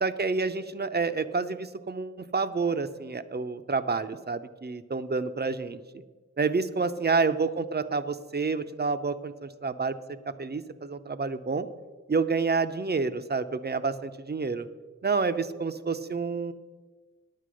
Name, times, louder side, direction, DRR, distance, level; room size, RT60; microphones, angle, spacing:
voice 1, 0.0-5.8 6.4-10.0 10.4-11.7 12.1-14.7 15.0-16.5, right 4 dB, 35° right, 11 dB, 0.6 m, -29 dB
9.4 x 8.5 x 6.3 m, 1.3 s
wide cardioid pair, 70°, 30 cm